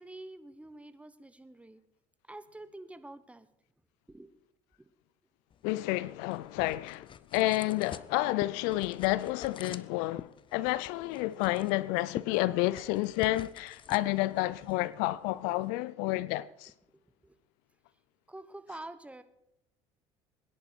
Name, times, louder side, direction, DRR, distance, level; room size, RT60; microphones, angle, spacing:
voice 1, 0.0-1.8 2.3-3.5 4.1-4.3 4.8-4.9 17.2-17.4 18.3-19.2, right 2 dB, 10° right, 1.2 m, -47 dB
sound 1, 5.5-15.7, left 7 dB, 35° left, 0.7 m, -48 dB
voice 2, 5.6-16.7, left 18 dB, 70° left, 0.5 m, -30 dB
22.0 x 10.5 x 4.5 m
hypercardioid pair, 65°, 15 cm